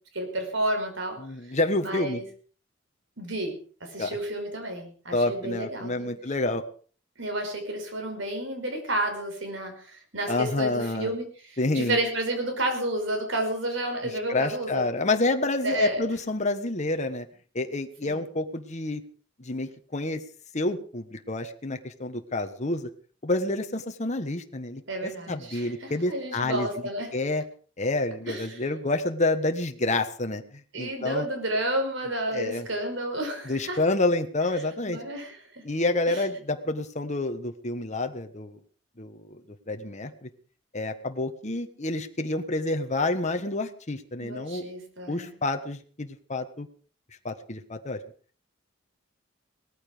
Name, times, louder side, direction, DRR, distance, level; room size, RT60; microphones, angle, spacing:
voice 1, 0.1-1.2 1.8-2.2 3.2-6.1 7.2-14.9 15.6-16.0 18.0-18.2 24.9-27.1 28.3-28.6 30.7-33.8 34.9-35.6 36.1-36.2 44.2-45.3, right 1 dB, 70° right, 5 dB, 5.5 m, -31 dB
voice 2, 1.2-2.2 4.0-4.1 5.1-6.6 10.3-11.1 11.6-12.0 14.3-17.3 17.5-19.0 19.4-20.2 20.5-22.9 23.2-26.7 27.1-27.4 27.8-30.4 30.8-31.3 32.3-32.7 33.5-35.0 35.6-38.6 39.0-39.4 39.7-40.3 40.7-44.6 45.1-46.7 47.2-48.0, left 2 dB, 35° left, 6 dB, 1.3 m, -28 dB
18.5 x 14.5 x 5.1 m, 0.42 s
head